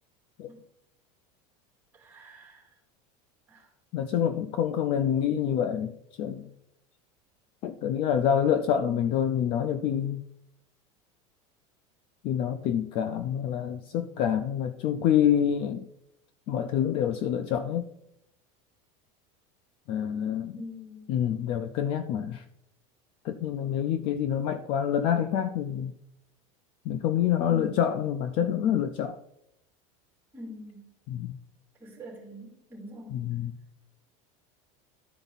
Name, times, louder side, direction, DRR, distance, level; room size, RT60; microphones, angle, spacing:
voice 1, 1.9-2.8 3.5-3.7 20.5-21.1 27.4-27.8 30.3-30.8 31.8-33.3, left 1 dB, 10° right, 2.7 m, -44 dB
voice 2, 3.9-6.5 7.6-10.2 12.2-15.9 16.5-17.9 19.9-20.6 21.1-22.4 23.2-25.9 26.9-29.2 31.1-31.4 33.1-33.5, left 9 dB, 35° left, 0.4 m, -27 dB
12.5 x 4.5 x 4.0 m
cardioid pair, 175°, 16 cm